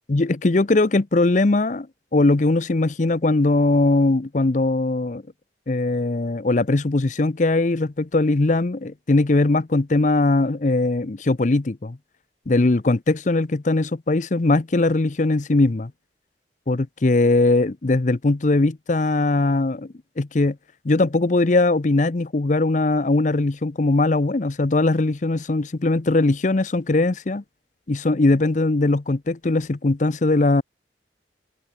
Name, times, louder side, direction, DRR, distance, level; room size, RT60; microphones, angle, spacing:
voice 1, 0.1-1.9 2.1-5.2 5.7-12.0 12.5-15.9 16.7-20.6 20.8-27.4 27.9-30.6, left 2 dB, 40° left, 0.6 m, -20 dB
open air
head